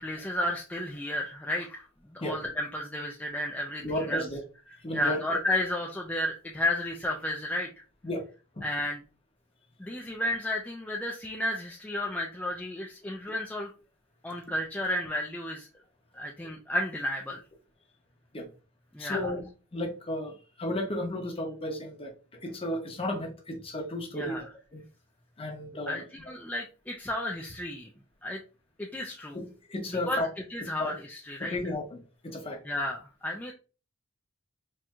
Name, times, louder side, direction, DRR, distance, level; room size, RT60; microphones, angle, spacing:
voice 1, 0.0-4.2 4.9-7.7 8.6-9.0 9.8-13.7 14.2-15.7 16.1-17.4 18.9-19.3 24.1-24.4 25.9-27.9 28.2-28.4 28.8-29.4 29.9-30.2 30.5-31.6 32.6-33.5, left 1 dB, 5° left, -1 dB, 0.4 m, -32 dB
voice 2, 3.8-4.4 4.8-5.2 8.0-8.2 8.5-8.6 18.3-18.5 19.0-19.4 19.7-24.8 25.4-26.0 29.3-30.3 30.8-30.9 31.4-32.6, left 1 dB, 25° left, 3 dB, 0.8 m, -34 dB
4.3 x 2.7 x 2.3 m, 0.33 s
head